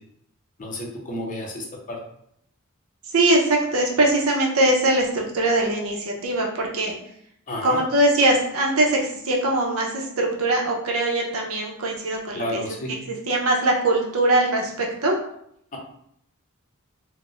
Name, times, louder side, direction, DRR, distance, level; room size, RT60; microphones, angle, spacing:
voice 1, 0.6-2.0 7.5-7.8 12.3-12.9 15.7-15.8, left 1 dB, 40° left, -1 dB, 0.6 m, -31 dB
voice 2, 3.1-6.9 7.6-12.6 13.1-15.2, right 1 dB, 80° right, 0 dB, 0.7 m, -22 dB
3.8 x 2.1 x 2.4 m, 0.71 s
head